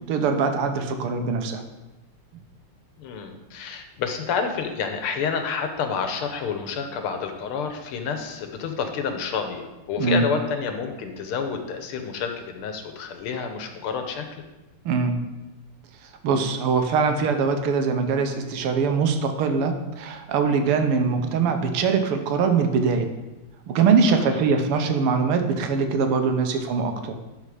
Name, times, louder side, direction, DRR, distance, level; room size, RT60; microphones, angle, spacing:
voice 1, 0.0-1.6 10.0-10.3 14.9-15.2 16.0-23.1 23.7-27.1, right 5 dB, 80° right, 6 dB, 1.8 m, -22 dB
voice 2, 3.0-14.4 24.1-24.4, left 6 dB, 80° left, 6 dB, 1.8 m, -29 dB
12.0 x 4.2 x 4.9 m, 1.0 s
omnidirectional pair, 2.4 m